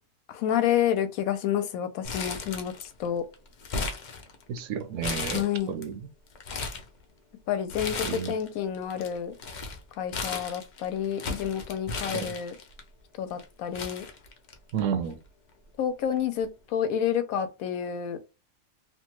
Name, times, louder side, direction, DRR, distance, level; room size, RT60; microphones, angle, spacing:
voice 1, 0.3-3.2 5.3-5.7 7.5-9.3 10.0-12.6 13.2-14.0 15.8-18.2, left 9 dB, 90° left, 1.0 m, -29 dB
Crumpling crinkling, 2.0-3.1 3.3-4.6 5.0-5.8 6.3-6.9 7.7-8.5 8.7-12.8 13.4-13.5 13.7-14.8 15.1-15.2 16.2-16.4, left 4 dB, 65° left, 0.4 m, -35 dB
voice 2, 4.5-6.1 8.0-8.4 12.1-12.3 14.7-15.2, right 7 dB, 70° right, 0.9 m, -32 dB
2.8 x 2.2 x 2.9 m
omnidirectional pair, 1.4 m